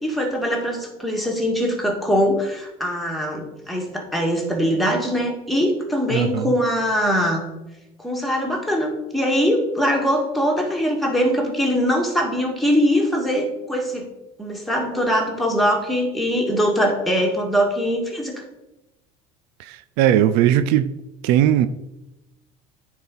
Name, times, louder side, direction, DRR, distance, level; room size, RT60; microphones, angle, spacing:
voice 1, 0.0-7.4 8.0-14.1 14.4-18.3, equal, ahead, 2.2 m, -22 dB
voice 2, 6.1-6.5 19.6-20.9 21.2-21.7, right 11 dB, 75° right, 0.5 m, -18 dB
9.3 x 4.6 x 5.5 m
supercardioid pair, 110°, 16 cm